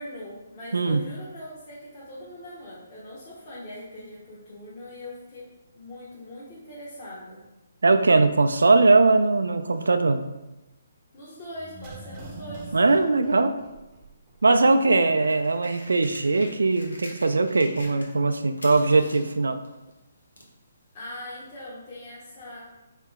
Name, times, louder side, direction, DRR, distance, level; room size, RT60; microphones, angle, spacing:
voice 1, 0.0-5.5 5.7-7.4 11.1-12.8 20.9-22.6, left 1 dB, 35° left, -9 dB, 1.0 m, -41 dB
voice 2, 0.7-1.0 7.8-10.3 12.7-13.6 14.4-19.6, right 3 dB, 75° right, 8 dB, 0.3 m, -20 dB
sound 1, 11.5-14.4 14.7-14.8, right 2 dB, 25° right, 0.6 m, -43 dB
sound 2, 14.8-18.3 18.5-20.6 21.4-21.5, left 1 dB, 85° left, 0.9 m, -45 dB
3.5 x 2.9 x 3.4 m, 1.0 s
figure-of-eight pair, 140°, 0 cm